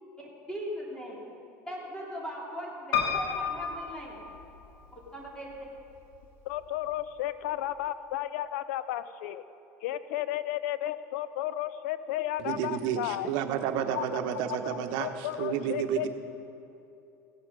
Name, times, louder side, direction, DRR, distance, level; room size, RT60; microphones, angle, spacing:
voice 1, 0.2-1.2 1.7-4.2 4.9-5.5, equal, 10° left, -4 dB, 3.3 m, -39 dB
Piano, 2.9-4.9 5.5-6.2 6.6-6.7 6.9-7.0, left 6 dB, 60° left, 2.2 m, -32 dB
voice 2, 6.5-9.4 9.8-13.3 13.9-14.0 14.5-16.1, left 13 dB, 80° left, 14 dB, 0.5 m, -33 dB
voice 3, 12.4-16.1, right 9 dB, 65° right, 7 dB, 1.0 m, -31 dB
16.0 x 8.2 x 5.3 m, 2.8 s
supercardioid pair, 110°, 8 cm